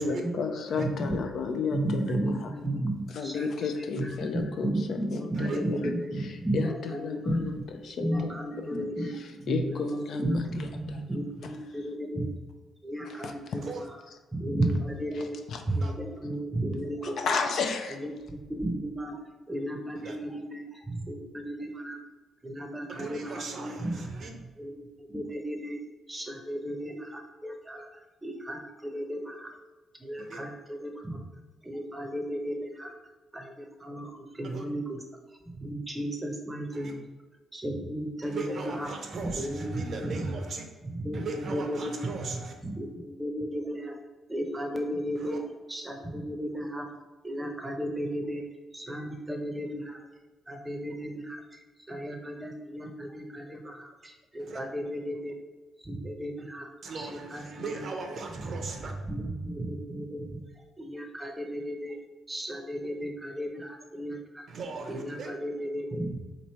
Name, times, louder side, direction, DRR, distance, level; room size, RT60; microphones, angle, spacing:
voice 1, 0.0-2.5 3.1-5.8 6.2-6.3 6.5-8.3 8.6-8.9 9.1-11.0 11.4-11.5 13.0-13.6 15.1-15.6 17.2-18.0, left 5 dB, 65° left, 5 dB, 0.4 m, -33 dB
voice 2, 0.7-1.2 1.7-3.5 3.8-7.5 8.0-12.3 12.8-14.0 14.3-15.4 15.7-17.2 18.0-19.2 19.5-22.0 22.4-24.2 24.6-25.8 26.1-27.9 28.2-29.5 30.0-31.2 31.6-32.9 33.3-35.0 35.6-37.0 37.5-38.9 39.2-40.3 40.8-42.3 42.6-44.0 44.3-45.4 45.7-46.9 47.2-48.4 48.7-50.0 50.5-51.6 51.9-55.3 55.8-56.7 56.9-57.8 59.1-60.4 60.8-62.0 62.3-64.5 64.9-66.2, right 1 dB, 15° right, 3 dB, 0.7 m, -34 dB
voice 3, 22.9-24.3 30.2-30.4 34.4-34.6 36.7-36.9 38.2-40.6 41.1-42.5 45.1-45.4 54.4-54.6 56.8-58.9 64.5-65.3, right 4 dB, 55° right, 4 dB, 0.6 m, -39 dB
3.0 x 2.6 x 4.3 m, 1.2 s
cardioid pair, 90°, 0 cm